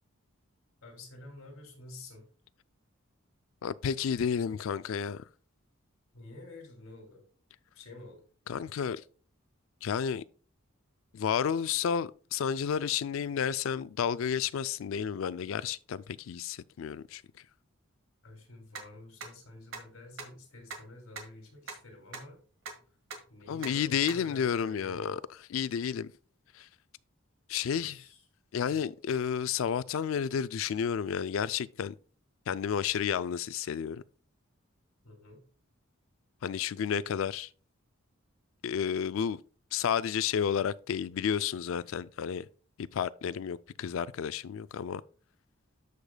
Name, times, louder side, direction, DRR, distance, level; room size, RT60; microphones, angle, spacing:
voice 1, 0.8-2.2 6.1-7.2 7.7-8.2 18.2-22.4 23.3-25.2 27.8-28.2 28.7-28.8 35.0-35.4, left 2 dB, 85° left, 2.6 m, -49 dB
voice 2, 3.6-5.2 8.5-9.0 9.8-10.2 11.1-17.2 23.5-25.2 25.5-26.1 26.6-26.7 27.5-28.0 28.5-31.9 32.5-34.0 36.4-37.5 38.6-39.4 39.7-42.4 42.9-45.0, left 7 dB, 70° left, 0.3 m, -31 dB
sound 1, 18.7-18.8 19.2-19.3 19.7-19.8 20.2-20.3 20.7-20.8 21.2-21.3 21.7-21.8 22.1-22.2 22.7-22.8 23.1-23.2 23.6-23.7 24.1-24.2, right 5 dB, 70° right, 1.6 m, -39 dB
13.5 x 5.0 x 2.2 m
head